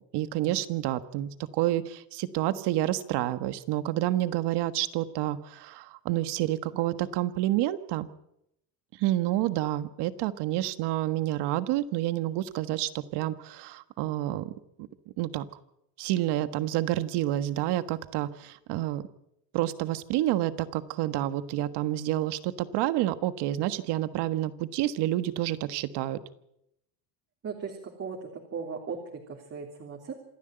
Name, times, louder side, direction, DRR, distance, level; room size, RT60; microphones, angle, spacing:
voice 1, 0.1-8.1 9.0-14.5 15.2-15.4 16.0-19.0 19.5-26.2, right 14 dB, 65° right, 12 dB, 1.5 m, -29 dB
voice 2, 27.4-30.1, right 5 dB, 35° right, 1 dB, 3.4 m, -38 dB
27.0 x 11.0 x 9.0 m, 0.80 s
cardioid pair, 130°, 43 cm